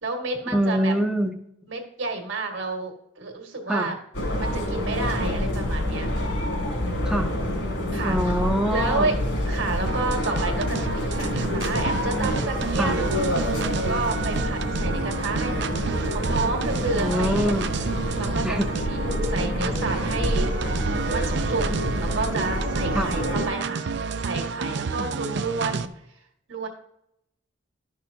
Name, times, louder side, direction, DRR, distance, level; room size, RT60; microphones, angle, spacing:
voice 1, 0.0-0.9 1.7-4.0 4.3-6.1 6.7-7.3 7.9-8.2 8.7-9.2 9.5-13.0 13.7-17.4 18.2-21.7 22.0-25.9 26.5-26.7, right 3 dB, 80° right, 2 dB, 1.9 m, -30 dB
voice 2, 0.5-1.4 3.7-3.9 7.1-7.3 8.0-9.1 12.8-13.0 17.0-17.7 18.4-18.7 22.9-23.1, equal, 5° right, 2 dB, 0.6 m, -24 dB
sound 1, 4.1-23.5, left 1 dB, 70° left, 3.2 m, -27 dB
sound 2, 9.9-25.9, right 5 dB, 60° right, 0.4 m, -30 dB
12.0 x 6.3 x 2.8 m, 0.77 s
head